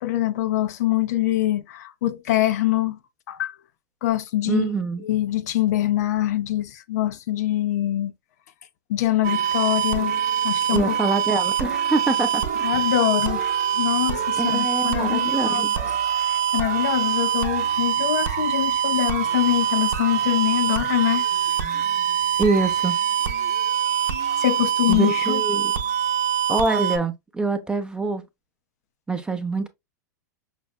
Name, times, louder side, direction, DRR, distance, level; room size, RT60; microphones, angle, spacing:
voice 1, 0.0-3.0 3.3-3.5 4.0-4.7 5.0-8.1 8.9-11.0 12.6-21.2 24.4-25.4, left 14 dB, 65° left, 0.5 m, -24 dB
voice 2, 4.5-5.0 10.7-12.7 14.4-15.7 22.4-23.0 24.9-25.7 26.5-28.2 29.1-29.7, right 3 dB, 10° right, 0.6 m, -25 dB
sound 1, 9.2-27.0, right 9 dB, 55° right, 0.7 m, -24 dB
5.8 x 2.1 x 2.3 m
hypercardioid pair, 105°, 10 cm